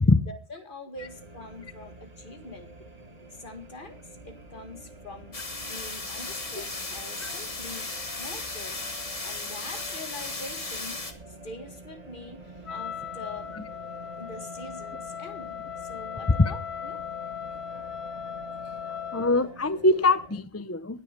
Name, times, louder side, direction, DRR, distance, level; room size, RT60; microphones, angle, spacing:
voice 1, 0.3-2.8 3.3-8.8 9.2-12.4 12.7-13.6 14.2-17.0, left 2 dB, 55° left, 7 dB, 2.0 m, -44 dB
sound 1, 0.9-20.4, right 2 dB, 40° right, 1.4 m, -47 dB
sound 2, 5.3-11.1, left 3 dB, 35° left, 1.5 m, -36 dB
Wind instrument woodwind instrument, 12.6-19.4, left 9 dB, 90° left, 1.6 m, -38 dB
voice 2, 19.1-21.0, left 2 dB, 15° left, 13 dB, 0.6 m, -23 dB
16.0 x 10.0 x 5.1 m, 0.38 s
omnidirectional pair, 1.0 m